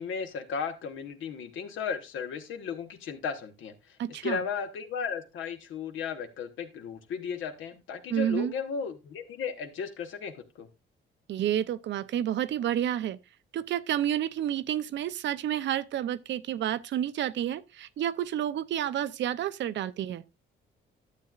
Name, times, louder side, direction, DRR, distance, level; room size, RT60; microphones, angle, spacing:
voice 1, 0.0-4.0 4.2-10.7, left 6 dB, 80° left, 1.2 m, -35 dB
voice 2, 4.0-4.4 8.1-8.5 11.3-13.2 13.5-20.2, right 11 dB, 65° right, 0.5 m, -30 dB
11.5 x 7.6 x 2.4 m
cardioid pair, 90°, 20 cm